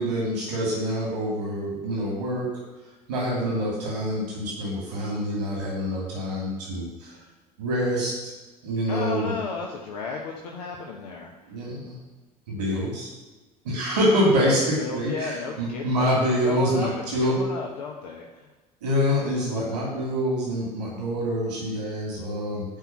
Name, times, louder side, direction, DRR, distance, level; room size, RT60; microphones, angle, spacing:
voice 1, 0.0-2.5 3.1-7.1 7.6-8.1 8.6-9.3 11.5-11.9 12.5-13.1 13.6-14.6 14.9-17.4 18.8-22.6, equal, 75° right, -3 dB, 2.5 m, -26 dB
voice 2, 8.9-11.3 14.4-16.1 16.4-18.2, left 4 dB, 80° left, -1 dB, 1.1 m, -33 dB
10.5 x 4.7 x 7.3 m, 1.2 s
figure-of-eight pair, 60°, 20 cm